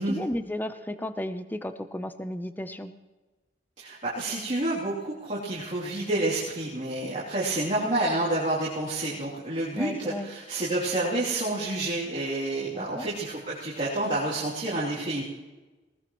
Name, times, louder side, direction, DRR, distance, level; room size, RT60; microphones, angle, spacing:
voice 1, 0.0-2.9 9.7-10.3 12.7-13.1, left 1 dB, 10° left, 10 dB, 0.6 m, -34 dB
voice 2, 3.8-15.2, right 2 dB, 40° right, -9 dB, 3.0 m, -29 dB
20.0 x 18.5 x 3.1 m, 1.2 s
head